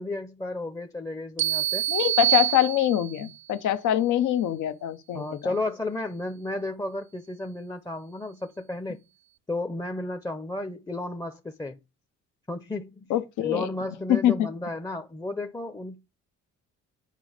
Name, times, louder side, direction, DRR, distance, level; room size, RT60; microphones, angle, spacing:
voice 1, 0.0-1.9 5.1-9.1 9.5-11.8 12.5-13.1 13.4-16.0, left 2 dB, 10° left, 0.6 m, -33 dB
sound 1, 1.4-3.3, right 12 dB, 40° right, 0.4 m, -26 dB
voice 2, 1.9-5.3 13.1-13.7 14.1-14.5, left 12 dB, 80° left, 0.8 m, -24 dB
8.2 x 4.1 x 4.9 m
cardioid pair, 90°, 30 cm